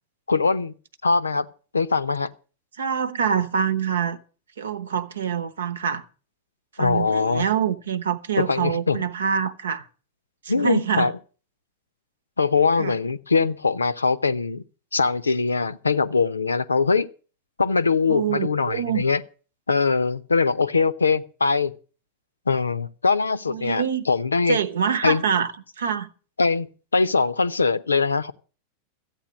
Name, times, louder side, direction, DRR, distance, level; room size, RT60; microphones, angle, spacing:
voice 1, 0.3-0.7 1.0-1.5 1.7-2.3 6.8-7.4 8.4-9.0 10.5-11.1 12.4-14.6 14.9-17.1 17.6-19.2 19.7-21.7 22.5-24.6 25.0-25.2 26.4-26.7 26.9-28.3, left 4 dB, 75° left, 0.6 m, -22 dB
voice 2, 2.8-4.2 4.6-6.0 6.8-9.8 10.5-11.1 12.8-13.0 18.1-19.0 23.5-24.0 24.5-25.5 25.8-26.1, right 7 dB, 65° right, 1.0 m, -25 dB
13.5 x 8.6 x 7.3 m
figure-of-eight pair, 90°, 0 cm